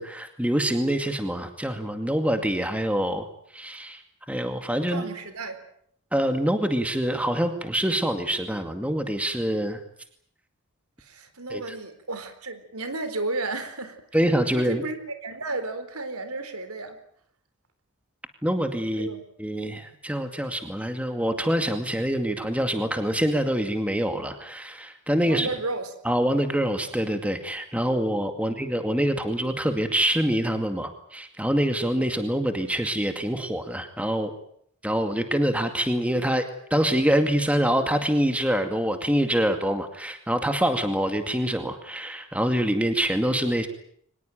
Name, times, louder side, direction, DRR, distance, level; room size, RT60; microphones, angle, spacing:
voice 1, 0.0-3.3 3.5-4.0 4.3-5.0 6.1-9.8 11.5-11.6 14.1-14.8 18.4-19.1 19.4-25.5 26.0-34.3 34.8-36.4 36.7-43.7, equal, 5° right, 7 dB, 2.2 m, -25 dB
voice 2, 4.9-5.6 11.0-14.2 14.5-17.0 18.9-19.2 25.3-25.9 28.4-28.6, right 2 dB, 85° right, 10 dB, 4.1 m, -33 dB
24.0 x 20.5 x 9.3 m, 0.66 s
head